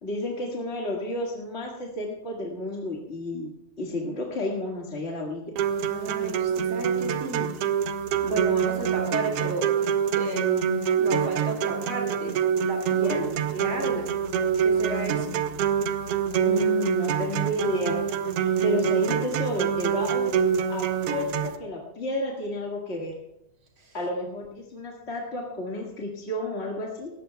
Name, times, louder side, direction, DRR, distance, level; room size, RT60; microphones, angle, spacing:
voice 1, 0.0-3.5 3.8-5.4 13.0-13.3 16.4-18.0 18.4-20.3 20.7-23.1 23.9-27.1, left 1 dB, 30° left, -2 dB, 1.5 m, -31 dB
sound 1, 5.6-21.6, right 8 dB, 80° right, 1.3 m, -26 dB
voice 2, 5.8-7.5 8.2-9.7 10.2-13.2 13.5-14.1 14.6-15.4, right 2 dB, 40° right, 1 dB, 3.1 m, -32 dB
19.0 x 17.0 x 2.3 m, 0.88 s
omnidirectional pair, 3.6 m